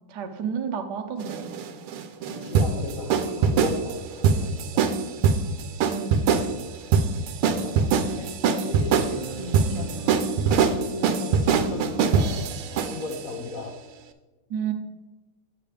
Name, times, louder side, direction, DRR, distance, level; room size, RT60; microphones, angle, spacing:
voice 1, 0.1-1.5 5.8-6.3 14.5-14.7, right 7 dB, 60° right, 5 dB, 1.2 m, -31 dB
sound 1, 1.2-13.2, right 6 dB, 85° right, 1.6 m, -23 dB
voice 2, 2.2-4.9 7.5-10.2 10.7-13.7, left 3 dB, 60° left, 3 dB, 0.9 m, -37 dB
sound 2, 2.2-4.8 9.1-10.9, right 1 dB, 25° right, 0.9 m, -41 dB
8.6 x 8.4 x 3.3 m, 1.2 s
omnidirectional pair, 2.3 m